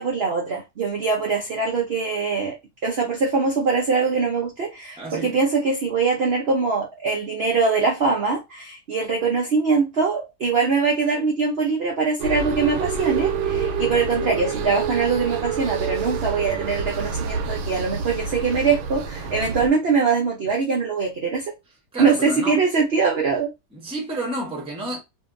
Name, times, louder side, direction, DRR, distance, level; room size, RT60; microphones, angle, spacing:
voice 1, 0.0-2.5 2.8-21.5 22.0-23.5, right 4 dB, 65° right, 0.6 m, -22 dB
voice 2, 5.0-5.4 21.9-22.6 23.7-25.0, right 1 dB, 5° right, 0.6 m, -30 dB
sound 1, 12.2-19.7, right 5 dB, 85° right, 1.2 m, -27 dB
2.7 x 2.5 x 2.4 m
omnidirectional pair, 1.8 m